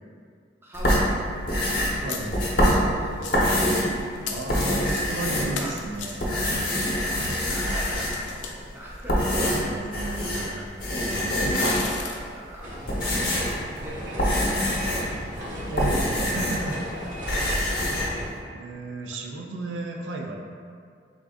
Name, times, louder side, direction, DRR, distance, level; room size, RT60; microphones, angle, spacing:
voice 1, 0.6-1.2 2.0-3.7 5.4-5.8 6.1-6.4 7.0-9.3 11.7-15.1 15.8-16.7 17.2-17.4, right 1 dB, 15° right, -4 dB, 0.4 m, -41 dB
sound 1, 0.7-4.0 4.3-5.8 6.2-8.3 8.9-10.5 10.8-12.0 12.6-16.8 17.0-18.1, equal, 55° left, 0.7 m, -25 dB
sound 2, 2.0-2.7 3.1-3.6 4.1-5.2 5.5-9.4 10.3-10.4 10.5-10.6 11.5-12.2, left 5 dB, 80° left, 0.4 m, -37 dB
voice 2, 2.0-2.5 4.2-6.3 9.6-10.7 11.1-12.0 15.6-16.7 17.3-17.9 18.5-20.4, right 2 dB, 85° right, 1 dB, 0.4 m, -34 dB
sound 3, 12.6-18.3, equal, 45° right, 0.7 m, -36 dB
3.5 x 2.5 x 3.5 m, 2.2 s
head